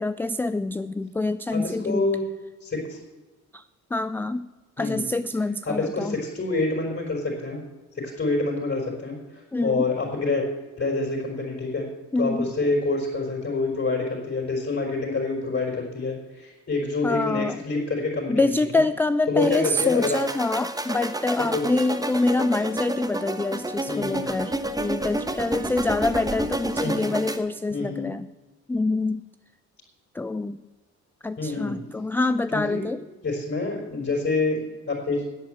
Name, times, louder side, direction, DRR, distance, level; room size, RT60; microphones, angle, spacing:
voice 1, 0.0-2.1 3.5-3.6 3.9-4.5 4.8-6.2 9.5-9.9 12.1-12.5 17.0-17.6 18.3-28.3 28.7-29.2 30.1-30.6 31.2-33.0, left 2 dB, 5° left, 13 dB, 0.3 m, -26 dB
voice 2, 1.5-2.2 2.6-3.0 4.8-5.1 5.6-7.6 7.9-10.5 10.8-11.9 12.2-18.5 19.3-20.2 21.5-21.6 23.9-24.2 26.8-27.1 27.7-28.1 31.4-31.8 32.5-32.8 33.2-34.6 34.9-35.2, left 3 dB, 45° left, -3 dB, 4.5 m, -27 dB
sound 1, 19.4-27.4, right 1 dB, 10° right, 1.2 m, -30 dB
10.5 x 8.3 x 7.7 m, 1.2 s
cardioid pair, 90°, 30 cm